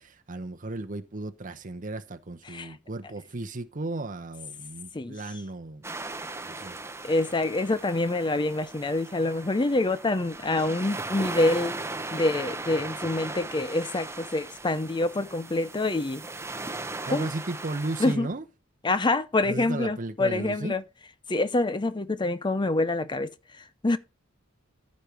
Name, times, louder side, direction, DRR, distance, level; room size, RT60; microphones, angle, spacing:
voice 1, 0.0-5.8 6.4-6.8 17.1-18.4 19.4-20.7, right 2 dB, 40° right, 0.8 m, -35 dB
sound 1, 5.8-18.1, right 2 dB, 15° right, 0.8 m, -38 dB
voice 2, 7.0-11.8 12.1-16.2 17.1-17.3 18.0-18.3 18.8-20.8 21.3-24.0, left 2 dB, 25° left, 0.6 m, -26 dB
14.5 x 5.3 x 3.4 m
head